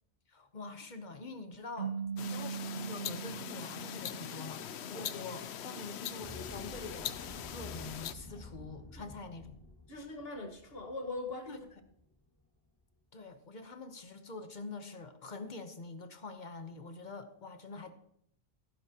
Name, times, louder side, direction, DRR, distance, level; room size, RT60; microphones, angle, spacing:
voice 1, 0.3-7.2 7.5-9.6 11.5-11.6 13.1-17.9, left 3 dB, 45° left, 8 dB, 1.1 m, -46 dB
sound 1, 1.8-4.9, right 6 dB, 70° right, 2.2 m, -41 dB
sound 2, 2.2-8.1, left 9 dB, 85° left, 0.9 m, -42 dB
voice 2, 4.9-5.3 8.3-8.4 8.9-9.0 9.9-11.7, left 2 dB, 65° left, 4 dB, 1.8 m, -42 dB
sound 3, 6.1-12.4, left 2 dB, 20° left, 2.0 m, -50 dB
14.5 x 12.0 x 2.9 m, 0.73 s
omnidirectional pair, 1.1 m